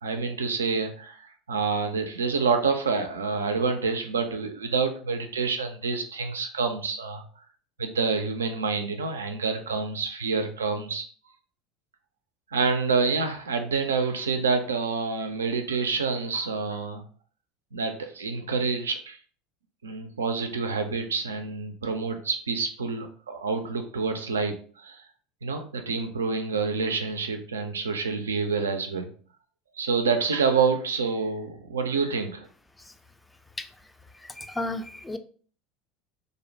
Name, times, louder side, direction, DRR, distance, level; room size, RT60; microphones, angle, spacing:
voice 1, 0.0-7.2 7.8-11.0 12.5-17.0 17.7-19.2 19.8-25.0 25.4-29.1 29.8-32.5, right 4 dB, 75° right, 6 dB, 0.3 m, -27 dB
voice 2, 34.1-35.2, left 2 dB, 10° left, 8 dB, 0.3 m, -34 dB
2.5 x 2.0 x 2.6 m, 0.43 s
figure-of-eight pair, 70°, 0 cm